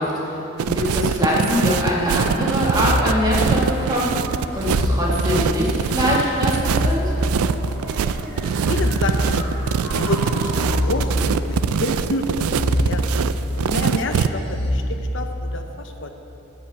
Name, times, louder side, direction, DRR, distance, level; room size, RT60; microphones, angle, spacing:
voice 1, 0.0-7.1, left 1 dB, 20° right, -4 dB, 1.8 m, -23 dB
sound 1, 0.6-14.3, right 6 dB, 80° right, 0.3 m, -23 dB
sound 2, 1.5-1.9 2.6-3.9 4.5-5.8 6.5-7.8 8.5-9.8 10.4-11.7 12.4-13.7 14.4-14.7, equal, 65° right, 2.4 m, -25 dB
sound 3, 1.8-10.8, equal, 15° left, 1.8 m, -37 dB
voice 2, 8.6-9.5 9.8-13.3 13.6-16.1, left 2 dB, 55° left, 5 dB, 0.8 m, -29 dB
10.5 x 5.9 x 8.2 m, 3.0 s
head